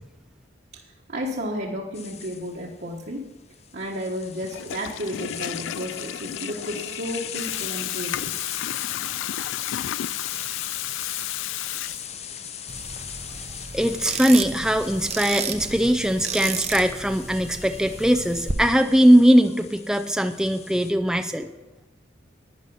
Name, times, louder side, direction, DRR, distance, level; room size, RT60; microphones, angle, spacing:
voice 1, 0.7-3.2 3.7-8.3 12.8-12.9, equal, 55° right, -2 dB, 1.4 m, -32 dB
sound 1, 1.9-20.9, left 8 dB, 35° left, 0.7 m, -40 dB
Water tap faucet / Toilet flush, 4.4-12.4, left 12 dB, 80° left, 0.3 m, -32 dB
sound 2, 12.7-18.5, right 5 dB, 35° right, 0.8 m, -33 dB
voice 2, 13.7-21.5, equal, 5° right, 7 dB, 0.4 m, -20 dB
12.0 x 9.8 x 5.5 m, 1.1 s
head